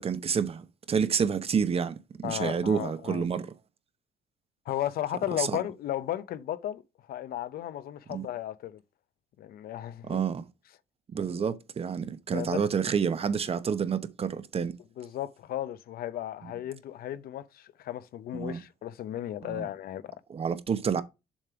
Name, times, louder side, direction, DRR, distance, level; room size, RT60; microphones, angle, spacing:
voice 1, 0.0-3.5 5.4-5.5 8.1-8.3 10.0-10.4 11.1-14.7 16.4-16.5 18.3-18.6 19.4-19.7 20.3-21.0, right 6 dB, 35° right, 0.9 m, -29 dB
voice 2, 2.2-3.2 4.7-6.8 7.1-8.8 9.4-10.2 11.4-11.5 12.3-12.6 14.6-14.7 15.0-20.2, left 12 dB, 65° left, 0.7 m, -35 dB
7.3 x 3.3 x 5.6 m
cardioid pair, 110°, 17 cm